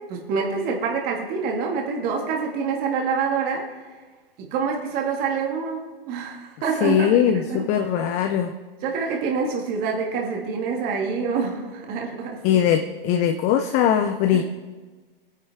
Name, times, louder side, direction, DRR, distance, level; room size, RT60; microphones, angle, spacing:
voice 1, 0.0-3.9 4.4-7.7 8.0-8.1 8.8-12.4 14.3-14.4, right 5 dB, 30° right, 0 dB, 2.1 m, -26 dB
voice 2, 6.8-8.5 12.4-14.4, left 9 dB, 25° left, 6 dB, 0.5 m, -20 dB
21.0 x 10.0 x 3.6 m, 1.4 s
hypercardioid pair, 130°, 29 cm